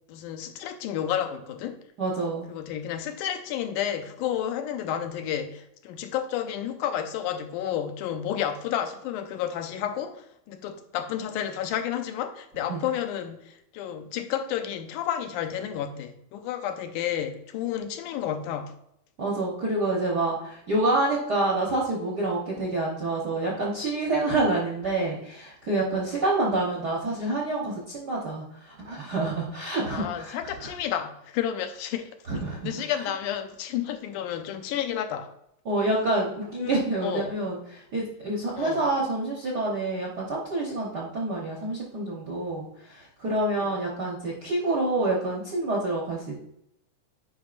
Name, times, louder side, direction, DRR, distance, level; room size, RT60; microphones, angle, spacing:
voice 1, 0.1-1.8 2.5-18.7 29.9-32.1 32.6-35.3 36.6-37.3 38.5-38.9 43.6-43.8, left 10 dB, 85° left, 7 dB, 2.2 m, -31 dB
voice 2, 2.0-2.5 12.7-12.8 19.2-30.7 32.3-32.7 35.6-46.3, right 2 dB, 60° right, -3 dB, 1.0 m, -27 dB
9.0 x 5.2 x 2.5 m, 0.77 s
omnidirectional pair, 3.5 m